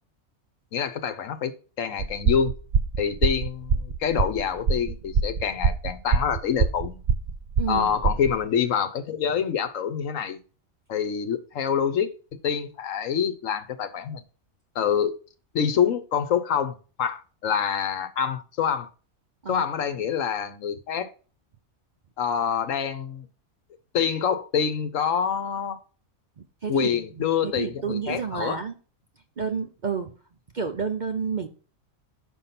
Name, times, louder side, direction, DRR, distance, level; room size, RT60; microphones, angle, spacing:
voice 1, 0.7-2.5 3.0-7.0 7.7-10.4 10.9-12.1 12.4-14.2 14.7-15.1 15.5-18.9 19.5-21.1 22.2-23.3 23.9-25.8 26.7-28.6, left 7 dB, 70° left, 1.2 m, -26 dB
sound 1, 2.0-8.4, right 6 dB, 85° right, 0.3 m, -24 dB
voice 2, 7.6-8.0 19.4-19.6 26.6-28.7 29.4-30.1 30.5-31.5, right 5 dB, 45° right, 0.6 m, -30 dB
6.6 x 5.5 x 5.8 m
omnidirectional pair, 1.4 m